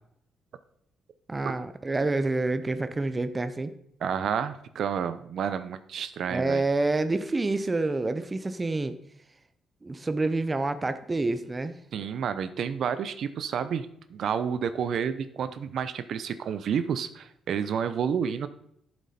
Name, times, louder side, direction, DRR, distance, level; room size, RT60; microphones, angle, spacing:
voice 1, 1.3-3.7 6.3-9.0 9.8-11.7, right 2 dB, 20° right, 10 dB, 0.6 m, -28 dB
voice 2, 4.0-6.6 11.9-18.5, right 7 dB, 60° right, 12 dB, 0.7 m, -30 dB
11.5 x 7.5 x 4.2 m, 0.72 s
cardioid pair, 145°, 0 cm